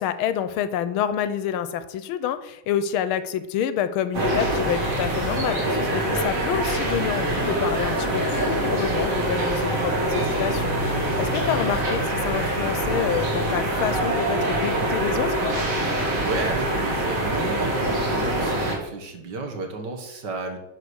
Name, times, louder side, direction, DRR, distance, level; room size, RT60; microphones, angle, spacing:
voice 1, 0.0-15.5, left 9 dB, 85° left, 12 dB, 1.5 m, -28 dB
sound 1, 4.1-18.7, right 1 dB, 40° right, 2.2 m, -24 dB
voice 2, 5.6-6.3 10.8-11.2 15.7-20.6, right 3 dB, 60° right, 4 dB, 1.9 m, -33 dB
10.5 x 4.9 x 6.2 m, 0.89 s
omnidirectional pair, 2.3 m